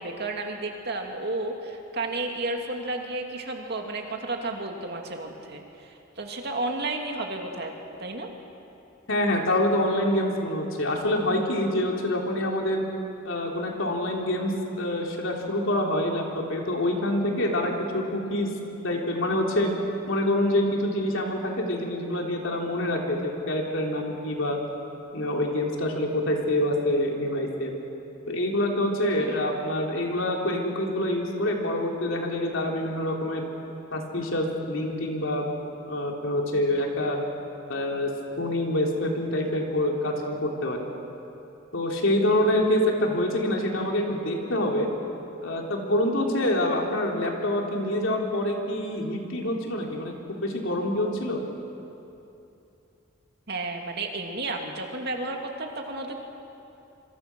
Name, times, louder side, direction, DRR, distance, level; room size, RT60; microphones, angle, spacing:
voice 1, 0.0-7.7 8.0-8.3 29.2-29.5 53.5-56.2, right 2 dB, 55° right, 2 dB, 2.5 m, -32 dB
voice 2, 9.1-12.8 13.3-18.5 18.8-19.7 20.1-24.6 25.1-27.7 28.3-33.5 33.9-35.4 35.9-37.2 37.7-40.8 41.7-44.9 45.4-51.4, left 1 dB, 75° left, 0 dB, 3.5 m, -26 dB
26.0 x 26.0 x 6.2 m, 2.8 s
head